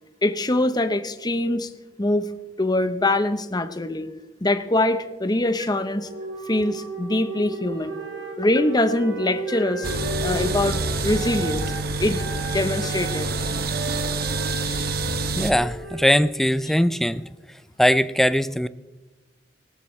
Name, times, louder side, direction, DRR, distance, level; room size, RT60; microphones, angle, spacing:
voice 1, 0.2-1.7 2.0-2.3 2.6-4.1 4.4-6.1 6.5-8.0 8.4-9.9 10.2-11.7 12.0-12.2 12.5-13.3 14.5-14.9, left 1 dB, 20° left, 10 dB, 0.9 m, -23 dB
sound 1, 4.9-11.3, right 1 dB, 30° right, 4.5 m, -34 dB
Wind instrument woodwind instrument, 7.8-11.9 12.1-16.3, right 2 dB, 90° right, 1.7 m, -37 dB
sound 2, 9.8-15.5, right 3 dB, 55° right, 1.2 m, -27 dB
voice 2, 15.4-17.2 17.8-18.7, equal, ahead, 14 dB, 0.4 m, -20 dB
19.0 x 17.0 x 3.2 m, 1.2 s
head